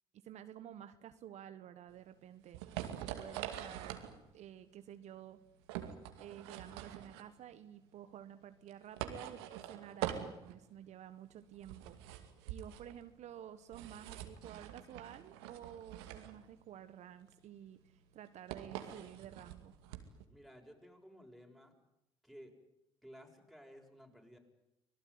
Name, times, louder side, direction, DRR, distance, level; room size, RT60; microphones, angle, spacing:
voice 1, 0.2-2.6 3.2-4.0 4.3-5.4 6.2-12.0 12.5-19.7, right 10 dB, 60° right, 11 dB, 1.4 m, -51 dB
sound 1, 1.9-20.2, right 11 dB, 90° right, 2.4 m, -45 dB
voice 2, 20.3-21.7 22.2-22.5 23.0-24.4, equal, ahead, 3 dB, 7.2 m, -56 dB
25.5 x 18.5 x 9.6 m, 0.84 s
hypercardioid pair, 65°, 13 cm